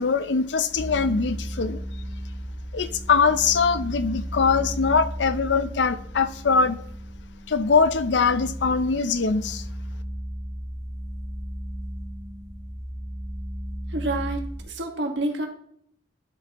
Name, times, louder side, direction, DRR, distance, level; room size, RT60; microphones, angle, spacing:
voice 1, 0.0-1.8 2.7-6.8 7.5-9.6, left 5 dB, 70° left, 13 dB, 0.5 m, -22 dB
sound 1, 0.7-14.6, equal, ahead, 3.2 m, -35 dB
voice 2, 13.9-15.5, right 2 dB, 70° right, 3 dB, 1.6 m, -28 dB
11.0 x 6.7 x 3.0 m, 0.65 s
head